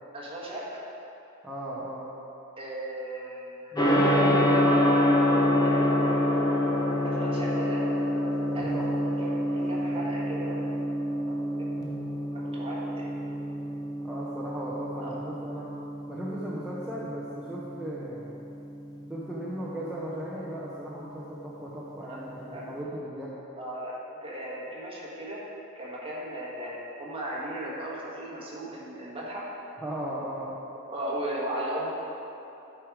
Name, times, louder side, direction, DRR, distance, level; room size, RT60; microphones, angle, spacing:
voice 1, 0.1-0.8 2.6-3.7 5.5-6.5 7.0-7.9 8.5-8.7 9.2-10.8 11.3-11.7 12.3-13.1 15.0-15.1 22.0-22.7 23.6-25.5 25.7-29.5 30.9-31.9, right 1 dB, 25° right, -5 dB, 1.5 m, -37 dB
voice 2, 1.4-2.1 3.7-5.3 8.7-8.9 14.0-15.7 16.1-18.4 19.1-23.3 29.8-30.6, right 1 dB, ahead, -9 dB, 0.7 m, -37 dB
Gong, 3.7-22.7, left 1 dB, 20° left, 0.9 m, -28 dB
9.7 x 4.9 x 4.7 m, 2.9 s
head